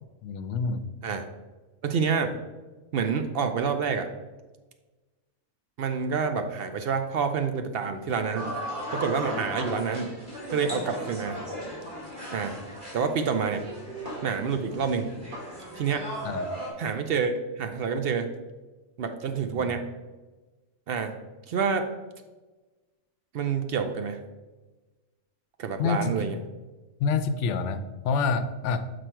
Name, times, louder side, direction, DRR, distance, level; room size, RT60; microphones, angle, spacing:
voice 1, 0.2-0.8 16.2-16.6 19.5-19.7 25.8-26.5 27.0-28.9, left 5 dB, 70° left, 12 dB, 0.8 m, -28 dB
voice 2, 1.8-2.4 2.9-4.1 5.8-8.5 8.9-10.1 10.5-11.4 12.3-12.5 12.9-13.6 14.2-15.1 15.7-16.1 16.8-17.3 17.6-18.3 19.0-19.8 20.9-21.1 21.5-21.9 23.3-24.2 25.6-26.4, right 6 dB, 60° right, 7 dB, 0.7 m, -27 dB
sound 1, 8.4-16.7, equal, 40° right, 1.9 m, -37 dB
6.0 x 4.8 x 4.5 m, 1.2 s
omnidirectional pair, 1.4 m